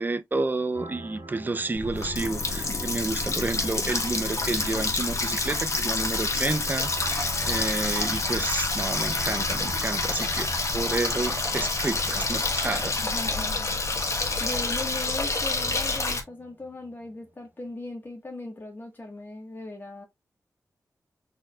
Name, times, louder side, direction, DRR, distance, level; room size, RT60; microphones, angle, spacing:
voice 1, 0.0-12.9, right 3 dB, 30° right, 0.5 m, -30 dB
sound 1, 0.7-17.2, right 2 dB, 60° right, 1.9 m, -44 dB
Water tap faucet, 1.8-16.2, left 3 dB, 50° left, 1.3 m, -28 dB
voice 2, 13.0-13.8 14.4-20.0, left 2 dB, 30° left, 1.5 m, -38 dB
4.3 x 3.7 x 2.4 m
wide cardioid pair, 80°, 7 cm